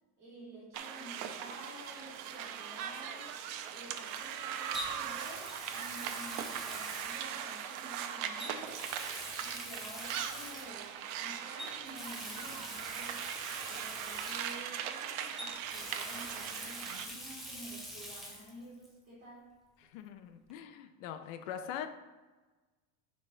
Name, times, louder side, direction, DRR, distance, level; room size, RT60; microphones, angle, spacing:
voice 1, 0.2-3.3 3.7-8.7 9.4-13.2 13.7-19.5, right 1 dB, 25° right, -5 dB, 2.0 m, -51 dB
sound 1, 0.7-17.1, right 9 dB, 75° right, 0.8 m, -40 dB
Water tap faucet, 1.8-2.0 4.7-7.8 8.4-10.9 11.6-15.0 15.4-18.5 18.8-18.9 20.5-20.6, equal, ahead, 0.7 m, -45 dB
voice 2, 19.8-21.9, left 9 dB, 65° left, 9 dB, 0.6 m, -42 dB
10.5 x 3.5 x 3.8 m, 1.2 s
cardioid pair, 160°, 41 cm